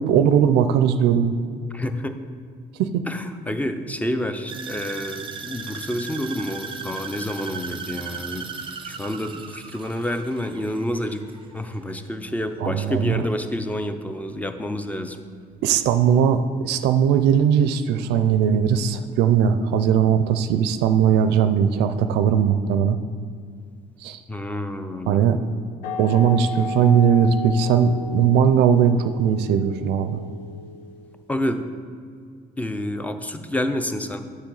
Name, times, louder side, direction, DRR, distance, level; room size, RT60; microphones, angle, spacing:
voice 1, 0.0-1.4 2.8-2.9 12.6-13.2 15.6-23.0 24.0-24.2 25.1-25.4 26.0-30.2, right 8 dB, 85° right, 10 dB, 0.4 m, -19 dB
voice 2, 1.7-2.2 3.1-8.5 8.9-11.2 11.5-15.2 24.3-25.3 31.3-31.6 32.6-34.2, left 1 dB, 10° left, 9 dB, 0.5 m, -28 dB
sound 1, 4.5-12.7 13.0-13.4 13.9-14.0, right 5 dB, 30° right, 0.6 m, -37 dB
sound 2, 25.8-31.3, left 5 dB, 90° left, 0.6 m, -34 dB
7.1 x 6.7 x 3.9 m, 2.2 s
cardioid pair, 110°, 17 cm